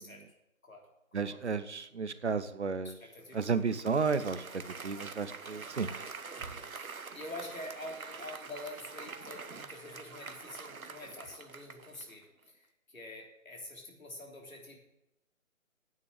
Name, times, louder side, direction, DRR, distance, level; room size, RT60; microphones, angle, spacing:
voice 1, 0.6-1.4 2.8-3.6 4.5-4.6 6.4-14.8, left 1 dB, 70° left, 1 dB, 3.4 m, -47 dB
voice 2, 1.1-2.9 3.3-5.9, right 5 dB, 55° right, 12 dB, 0.8 m, -32 dB
Applause, 3.3-12.2, right 4 dB, 80° right, 1.1 m, -45 dB
9.3 x 6.4 x 8.6 m, 0.89 s
figure-of-eight pair, 155°, 42 cm